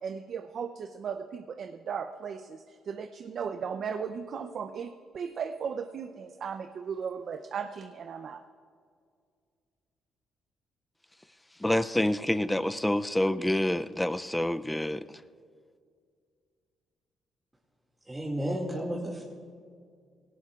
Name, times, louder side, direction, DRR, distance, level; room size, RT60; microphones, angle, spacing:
voice 1, 0.0-8.4, right 6 dB, 60° right, 7 dB, 0.6 m, -36 dB
voice 2, 11.6-15.0, left 1 dB, 10° left, 12 dB, 0.4 m, -27 dB
voice 3, 18.1-19.2, equal, 15° right, -4 dB, 2.2 m, -32 dB
19.5 x 17.5 x 2.4 m, 2.2 s
cardioid pair, 90°, 0 cm